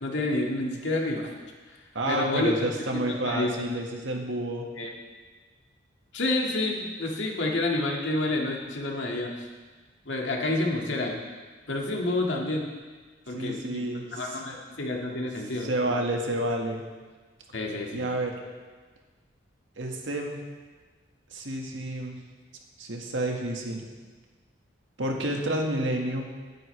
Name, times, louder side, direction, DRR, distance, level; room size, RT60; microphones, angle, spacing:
voice 1, 0.0-1.3 2.1-2.7 3.2-3.5 4.8-4.9 6.1-9.3 10.1-11.2 11.7-12.7 13.3-13.8 14.1-15.7 17.5-18.1, left 2 dB, 75° left, -1 dB, 1.9 m, -29 dB
voice 2, 1.9-4.7 13.3-14.4 15.6-16.8 17.9-18.4 19.8-20.4 21.3-22.2 22.8-23.8 25.0-26.3, right 1 dB, 85° right, 1 dB, 1.7 m, -30 dB
19.0 x 9.0 x 3.3 m, 1.4 s
head